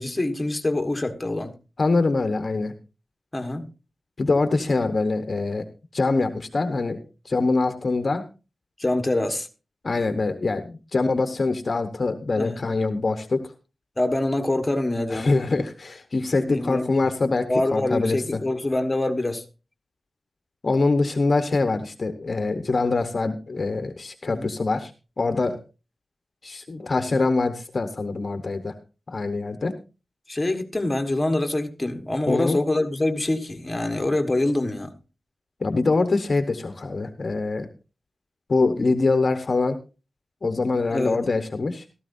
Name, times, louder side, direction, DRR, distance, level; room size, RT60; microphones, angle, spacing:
voice 1, 0.0-1.5 3.3-3.7 8.8-9.5 12.4-12.6 14.0-15.3 16.5-16.9 17.5-19.4 24.3-24.5 30.3-34.9 40.9-41.2, left 2 dB, 15° left, 1.4 m, -25 dB
voice 2, 1.8-2.7 4.2-5.6 5.9-7.0 7.2-8.2 9.8-13.4 15.1-18.4 20.6-24.9 25.2-25.6 26.4-28.7 29.1-29.7 32.3-32.6 35.6-37.7 38.5-39.8 40.4-41.8, left 3 dB, 40° left, 1.1 m, -24 dB
16.0 x 13.5 x 2.6 m
wide cardioid pair, 150°, 0 cm